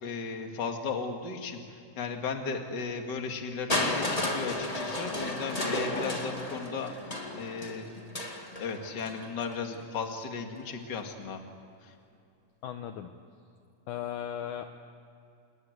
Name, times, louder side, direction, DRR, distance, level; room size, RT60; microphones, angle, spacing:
voice 1, 0.0-1.6 2.0-6.9 7.3-7.9 8.6-11.4, left 5 dB, 35° left, 4 dB, 2.2 m, -35 dB
Crushing, 3.7-9.6 10.6-10.7, left 1 dB, 15° left, 1.5 m, -33 dB
voice 2, 12.6-13.1 13.9-14.7, left 10 dB, 70° left, 6 dB, 2.1 m, -36 dB
27.0 x 21.5 x 8.1 m, 2.6 s
omnidirectional pair, 4.3 m